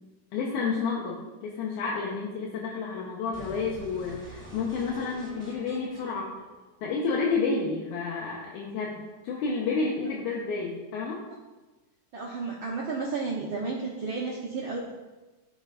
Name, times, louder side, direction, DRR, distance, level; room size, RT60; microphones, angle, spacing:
voice 1, 0.3-6.4 6.8-11.2, left 4 dB, 70° left, -3 dB, 2.2 m, -30 dB
sound 1, 3.3-7.3, right 2 dB, 20° right, 1.5 m, -46 dB
voice 2, 12.1-14.9, right 4 dB, 75° right, -4 dB, 1.1 m, -32 dB
14.0 x 6.6 x 2.5 m, 1.2 s
omnidirectional pair, 3.9 m